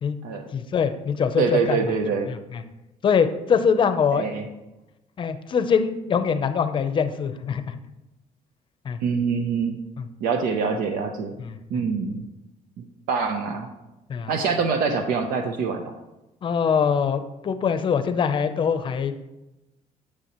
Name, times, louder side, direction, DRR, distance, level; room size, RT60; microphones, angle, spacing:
voice 1, 0.5-1.8 2.3-2.6 3.0-4.3 5.2-7.8 8.8-9.0 10.0-10.1 11.4-11.8 14.1-14.3 16.4-19.2, left 6 dB, 35° left, 9 dB, 0.6 m, -23 dB
voice 2, 1.4-2.3 4.1-4.5 9.0-9.8 10.2-11.3 11.7-12.2 13.1-13.7 14.3-16.0, right 5 dB, 85° right, 5 dB, 0.7 m, -25 dB
9.9 x 6.9 x 3.0 m, 0.98 s
cardioid pair, 140°, 14 cm